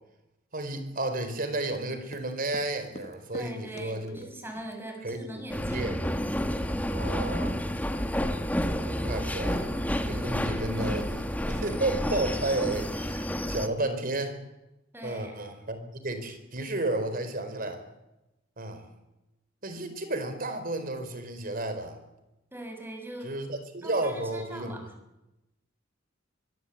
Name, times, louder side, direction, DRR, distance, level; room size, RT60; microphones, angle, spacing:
voice 1, 0.5-4.3 5.0-6.0 6.9-7.6 8.8-9.7 10.0-14.4 15.0-17.8 18.6-18.9 19.6-22.0 23.2-24.9, right 2 dB, 50° right, 9 dB, 4.5 m, -32 dB
sound 1, 2.0-4.7 5.1-5.3 5.6-5.8 6.0-6.3 6.5-7.1, left 1 dB, 35° left, 1.7 m, -48 dB
voice 2, 3.3-5.9 14.9-15.4 22.5-23.3 23.8-24.9, right 1 dB, 10° right, 4 dB, 5.9 m, -41 dB
sound 2, 5.5-13.7, equal, 10° left, 1.8 m, -30 dB
23.5 x 22.0 x 8.6 m, 0.95 s
head